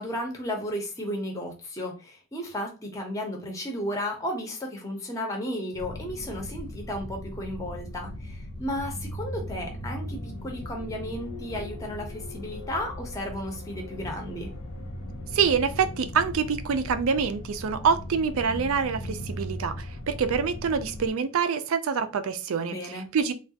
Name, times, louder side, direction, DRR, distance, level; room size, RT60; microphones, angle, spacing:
voice 1, 0.0-14.5 22.7-23.1, equal, 15° left, 1 dB, 0.6 m, -34 dB
sound 1, 5.7-21.1, left 1 dB, 80° left, 0.6 m, -38 dB
voice 2, 15.3-22.8 23.1-23.3, right 6 dB, 75° right, 11 dB, 0.4 m, -26 dB
3.2 x 2.3 x 2.7 m, 0.32 s
head